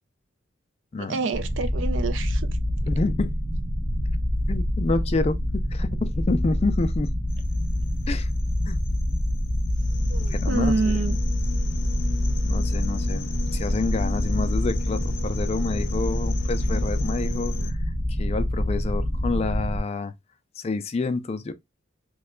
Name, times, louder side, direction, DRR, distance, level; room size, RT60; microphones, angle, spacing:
voice 1, 1.0-2.5 10.1-11.2, right 4 dB, 75° right, 0.4 m, -27 dB
sound 1, 1.3-19.8, left 1 dB, 5° right, 0.8 m, -26 dB
voice 2, 2.8-3.3 4.5-7.1 8.1-8.3 8.7-8.8 10.3-11.0 12.4-17.8 18.1-20.1 20.6-21.5, left 3 dB, 30° left, 0.3 m, -28 dB
sound 2, 7.3-17.7, left 6 dB, 80° left, 0.6 m, -39 dB
3.0 x 2.2 x 3.6 m
head